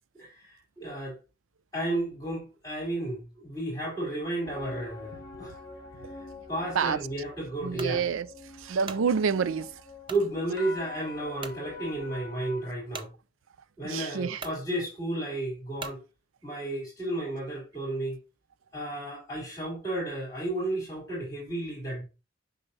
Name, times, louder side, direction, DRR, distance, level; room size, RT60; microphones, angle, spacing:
voice 1, 0.2-1.2 1.7-5.6 6.5-8.0 10.1-13.1 13.8-16.0 16.4-18.2 18.7-22.0, right 1 dB, 20° left, 3.2 m, -33 dB
sound 1, 4.4-12.7, left 3 dB, 50° left, 1.2 m, -45 dB
voice 2, 7.6-8.3 8.6-9.7 13.8-14.4, right 6 dB, 90° right, 0.4 m, -28 dB
sound 2, 7.8-8.0 8.6-9.1 10.0-10.3 10.8-10.9 11.4-11.6 12.9-13.1 13.9-14.0 14.4-14.6 15.8-16.0, right 4 dB, 25° right, 0.6 m, -41 dB
6.8 x 5.7 x 2.7 m
head